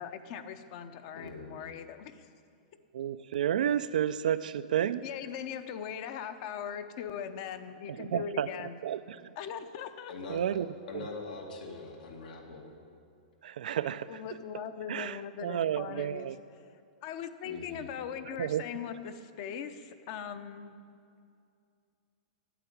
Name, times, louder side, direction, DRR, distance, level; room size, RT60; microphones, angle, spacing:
voice 1, 0.0-2.3 5.0-8.8 9.4-10.1 14.1-16.3 17.0-20.8, left 8 dB, 40° left, 0.7 m, -40 dB
voice 2, 1.1-1.5 10.1-10.4 10.9-12.7 17.4-17.9, left 3 dB, 85° left, 2.5 m, -42 dB
voice 3, 2.9-5.1 8.0-9.3 10.3-10.7 10.9-11.1 13.4-14.2 14.9-16.4 18.3-18.6, right 10 dB, 80° right, 0.4 m, -31 dB
9.1 x 8.2 x 9.3 m
supercardioid pair, 160°, 4 cm